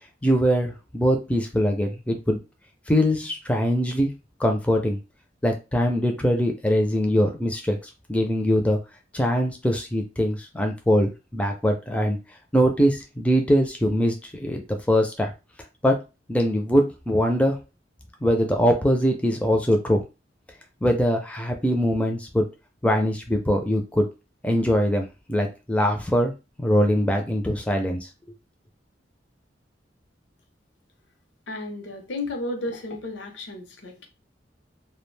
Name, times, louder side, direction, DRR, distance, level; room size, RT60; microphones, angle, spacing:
voice 1, 0.2-2.4 2.9-4.1 4.4-5.0 5.4-8.8 9.1-12.2 12.5-14.6 14.9-15.3 15.8-16.0 16.3-17.6 18.2-20.0 20.8-22.5 22.8-24.1 24.4-26.3 26.6-28.1, equal, 5° left, 0.4 m, -22 dB
voice 2, 31.5-34.1, left 2 dB, 75° left, 0.7 m, -33 dB
2.3 x 2.1 x 3.1 m
head